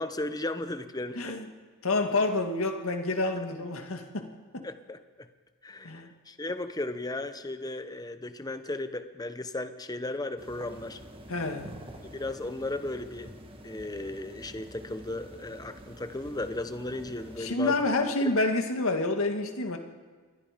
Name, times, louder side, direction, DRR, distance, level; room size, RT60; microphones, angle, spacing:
voice 1, 0.0-1.2 4.6-5.3 5.6-11.0 12.1-13.3 13.6-17.8, left 2 dB, 15° left, 10 dB, 1.0 m, -35 dB
voice 2, 1.1-1.5 1.8-4.7 5.8-6.1 11.3-11.8 17.4-19.8, left 2 dB, 65° left, 5 dB, 2.1 m, -28 dB
sound 1, 10.4-17.5, equal, 25° right, 2.1 m, -47 dB
27.5 x 22.5 x 5.2 m, 1.5 s
head